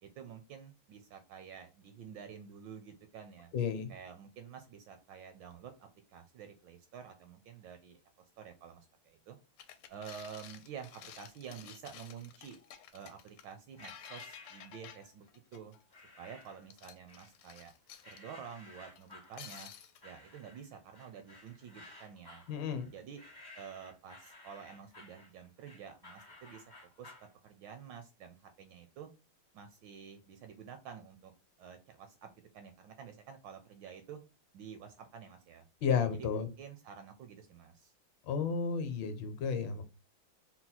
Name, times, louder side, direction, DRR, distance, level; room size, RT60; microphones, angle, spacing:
voice 1, 0.0-3.5 3.9-8.0 8.4-9.4 9.9-12.6 12.9-15.3 15.5-15.8 16.2-17.7 18.1-19.7 20.0-22.4 22.9-23.2 23.5-26.6 27.0-27.1 27.4-29.1 29.5-31.3 31.6-34.2 34.5-35.7 36.1-37.9, right 7 dB, 75° right, 7 dB, 1.1 m, -49 dB
voice 2, 3.5-3.9 22.5-22.9 35.8-36.5 38.3-39.8, left 6 dB, 65° left, 8 dB, 1.3 m, -32 dB
sound 1, 9.6-15.9 16.4-18.2 18.9-20.0, left 9 dB, 80° left, 1.4 m, -52 dB
sound 2, 13.8-15.1 15.9-16.7 17.1-17.7 18.0-27.3, left 2 dB, 40° left, 0.3 m, -55 dB
4.2 x 2.1 x 4.0 m, 0.30 s
omnidirectional pair, 2.4 m